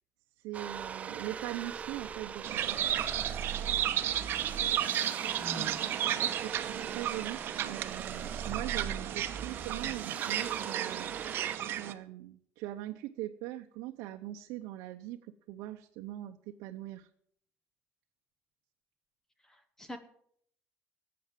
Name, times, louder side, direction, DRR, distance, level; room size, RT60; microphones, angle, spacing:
voice 1, 0.4-3.0 5.6-15.2 15.5-17.1, right 14 dB, 85° right, 5 dB, 0.8 m, -42 dB
sound 1, 0.5-11.6, right 7 dB, 30° right, 0.5 m, -41 dB
sound 2, 2.4-11.9, right 11 dB, 50° right, 1.1 m, -33 dB
voice 2, 5.4-6.3 19.5-20.0, equal, 10° left, 9 dB, 1.1 m, -45 dB
15.0 x 8.6 x 7.5 m, 0.66 s
cardioid pair, 155°, 5 cm